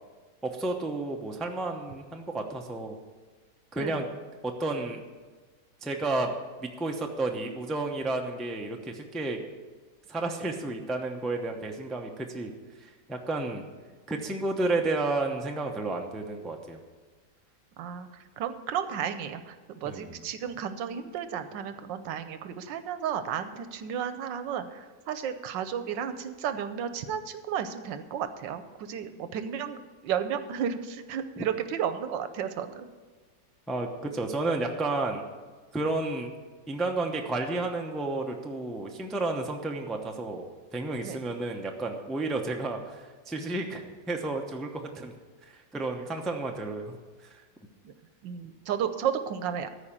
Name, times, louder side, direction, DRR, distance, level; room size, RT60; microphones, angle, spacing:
voice 1, 0.4-3.0 3.7-4.1 4.4-5.0 5.8-6.3 6.8-9.4 10.1-12.5 12.8-13.6 14.1-16.8 19.8-20.2 31.4-31.5 33.7-35.2 35.7-36.3 36.7-40.4 40.7-43.0 43.3-45.1 45.5-46.9 47.3-47.4, right 2 dB, ahead, 2 dB, 0.4 m, -31 dB
voice 2, 17.8-18.1 18.4-32.9 41.0-41.2 47.8-47.9 48.2-49.7, right 8 dB, 85° right, 10 dB, 1.5 m, -33 dB
14.0 x 4.9 x 8.9 m, 1.4 s
omnidirectional pair, 1.9 m